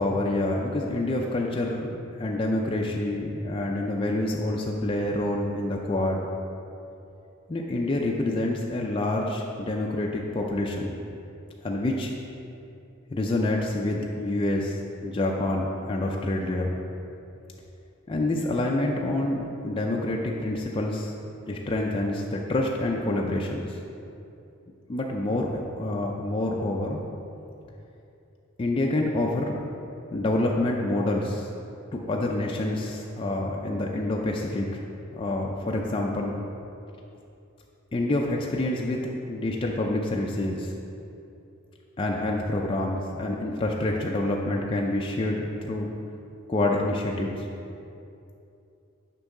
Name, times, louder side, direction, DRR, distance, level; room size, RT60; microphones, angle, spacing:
voice 1, 0.0-6.3 7.5-10.9 11.6-12.1 13.1-16.8 18.1-21.1 21.5-23.7 24.9-27.0 28.6-29.6 30.1-31.5 32.1-34.8 35.1-36.4 37.9-40.7 42.0-45.9 46.5-47.5, left 1 dB, 25° left, -1 dB, 0.3 m, -27 dB
6.7 x 5.2 x 3.6 m, 2.7 s
head